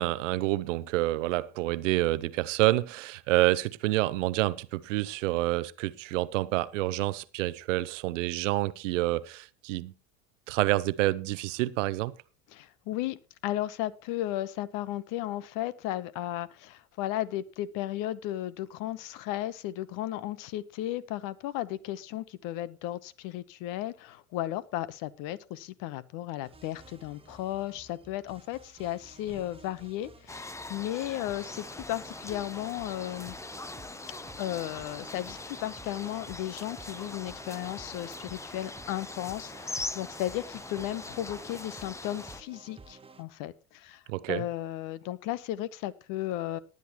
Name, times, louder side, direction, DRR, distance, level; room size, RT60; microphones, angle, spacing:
voice 1, 0.0-9.9 10.5-12.1 44.1-44.4, right 17 dB, 65° right, 0.8 m, -28 dB
voice 2, 12.5-13.2 13.4-33.3 34.4-44.0 44.3-46.6, left 14 dB, 50° left, 1.0 m, -35 dB
sound 1, 26.4-43.2, right 3 dB, 15° right, 1.1 m, -52 dB
sound 2, 30.3-42.4, left 2 dB, 5° left, 0.7 m, -42 dB
19.0 x 9.8 x 3.0 m
hypercardioid pair, 75°, 40 cm